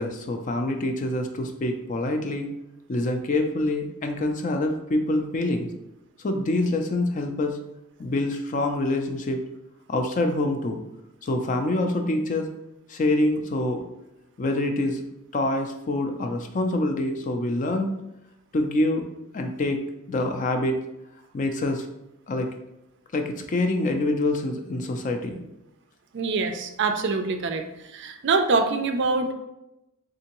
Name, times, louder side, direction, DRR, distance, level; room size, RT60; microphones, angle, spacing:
voice 1, 0.0-2.5 2.9-5.7 6.2-7.6 8.0-9.4 9.9-10.8 11.2-12.5 12.9-13.8 14.4-15.0 15.3-17.9 18.5-19.1 19.3-19.8 20.1-20.8 21.3-21.9 22.3-22.5 23.1-25.4, left 2 dB, 35° left, 5 dB, 0.4 m, -26 dB
voice 2, 26.1-29.3, right 4 dB, 55° right, 7 dB, 0.4 m, -25 dB
3.7 x 3.4 x 2.9 m, 0.89 s
head